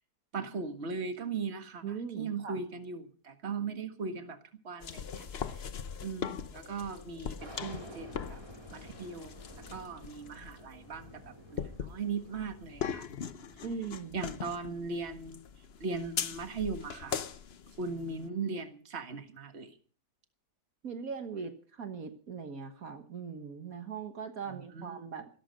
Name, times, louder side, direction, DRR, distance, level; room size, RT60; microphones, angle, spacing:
voice 1, 0.3-4.4 4.6-5.6 6.0-8.4 8.7-13.1 14.1-15.4 15.8-17.3 17.8-19.7 24.5-25.1, right 4 dB, 45° right, 7 dB, 1.9 m, -38 dB
voice 2, 1.8-2.6 13.6-14.2 20.8-25.3, right 6 dB, 65° right, 7 dB, 1.9 m, -40 dB
sound 1, 4.8-18.3, left 7 dB, 50° left, 0.9 m, -41 dB
sound 2, 7.4-13.7, right 1 dB, 20° right, 3.7 m, -51 dB
16.0 x 14.0 x 5.3 m, 0.42 s
omnidirectional pair, 1.7 m